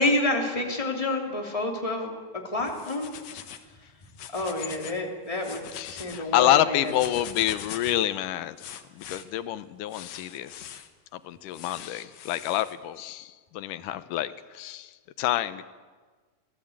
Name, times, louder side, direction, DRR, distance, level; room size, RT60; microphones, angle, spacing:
voice 1, 0.0-2.1 2.5-3.1 4.3-5.6 5.9-6.9, left 2 dB, 10° left, 1 dB, 3.0 m, -28 dB
sound 1, 2.6-3.7 4.0-5.0 5.3-6.2 6.8-8.1 8.6-9.2 9.9-10.9 11.5-12.7, left 9 dB, 65° left, 2.3 m, -42 dB
voice 2, 5.7-10.7 11.1-15.7, left 13 dB, 90° left, 13 dB, 2.4 m, -28 dB
25.5 x 18.0 x 8.8 m, 1.4 s
omnidirectional pair, 3.6 m